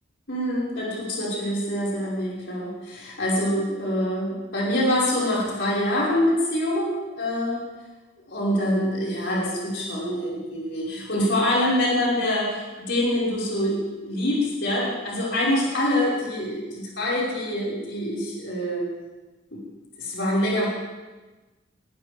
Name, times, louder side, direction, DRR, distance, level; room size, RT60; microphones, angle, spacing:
voice 1, 0.3-7.6 8.3-18.8 19.5-19.6 20.0-20.7, left 1 dB, 70° left, -6 dB, 5.8 m, -25 dB
23.0 x 16.0 x 3.7 m, 1.2 s
head